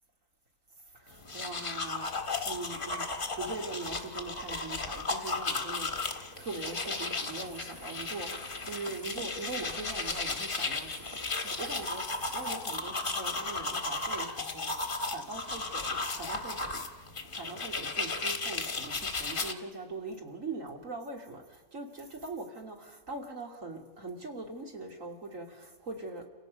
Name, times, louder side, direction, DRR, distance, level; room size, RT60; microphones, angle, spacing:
voice 1, 0.9-2.1 2.4-8.3 8.6-12.0 12.3-16.8 17.3-26.2, right 3 dB, 50° right, 1 dB, 3.2 m, -41 dB
sound 1, 1.1-19.5, left 3 dB, 35° left, 1.5 m, -35 dB
sound 2, 6.3-12.7, right 2 dB, 80° right, 3.9 m, -51 dB
30.0 x 17.0 x 5.3 m, 1.3 s
omnidirectional pair, 1.8 m